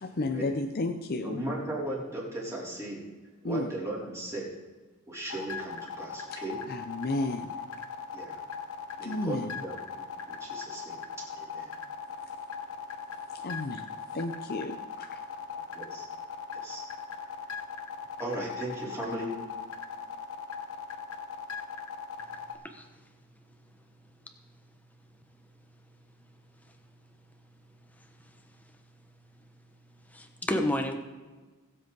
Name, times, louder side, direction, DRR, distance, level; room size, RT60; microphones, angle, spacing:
voice 1, 0.0-1.4 3.4-3.7 6.7-7.5 9.0-9.6 13.4-13.9 14.1-15.2, left 2 dB, 45° left, 6 dB, 0.6 m, -32 dB
voice 2, 1.2-3.1 3.4-4.5 5.1-6.6 8.1-8.4 9.0-11.7 15.7-16.1 16.6-16.8 18.2-19.4, right 1 dB, 15° right, -5 dB, 3.8 m, -37 dB
sound 1, 5.3-22.6, left 7 dB, 85° left, 1.2 m, -39 dB
voice 3, 30.1-31.0, left 1 dB, 5° left, 5 dB, 1.2 m, -30 dB
21.0 x 7.7 x 4.0 m, 1.3 s
head